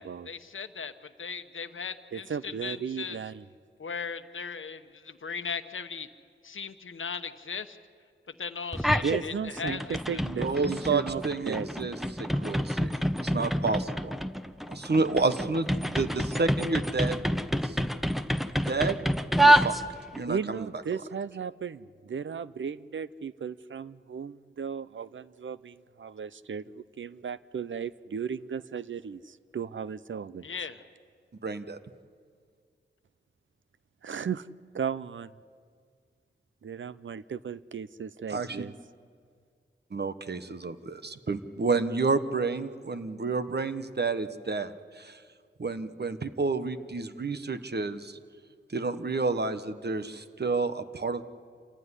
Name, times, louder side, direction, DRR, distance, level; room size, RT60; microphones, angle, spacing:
voice 1, 0.0-3.2 3.8-6.1 6.4-7.8 8.4-10.2 30.4-30.8, left 5 dB, 85° left, 9 dB, 1.0 m, -38 dB
voice 2, 2.1-3.5 8.9-11.7 20.3-30.5 34.0-34.5 34.7-35.3 36.6-38.7, right 7 dB, 75° right, 16 dB, 0.6 m, -35 dB
sound 1, 8.7-9.2 9.6-20.2, right 1 dB, ahead, 0.9 m, -27 dB
voice 3, 10.2-12.9 13.3-14.1 14.7-17.2 18.6-19.0 19.4-19.7 20.2-20.6 31.4-31.8 38.3-38.7 39.9-44.7 45.6-48.1 48.7-51.2, right 3 dB, 55° right, 10 dB, 1.2 m, -30 dB
27.5 x 15.0 x 9.8 m, 2.1 s
cardioid pair, 50°, 20 cm